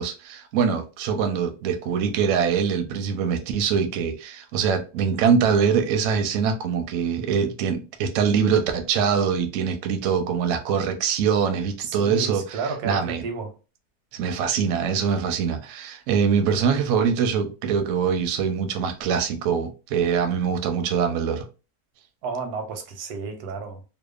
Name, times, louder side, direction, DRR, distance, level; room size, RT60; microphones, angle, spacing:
voice 1, 0.0-12.6 12.8-13.2 14.1-21.4, right 6 dB, 70° right, 0.8 m, -23 dB
voice 2, 11.8-13.6 22.2-23.8, right 4 dB, 85° right, 1.1 m, -32 dB
2.8 x 2.1 x 2.2 m
omnidirectional pair, 1.6 m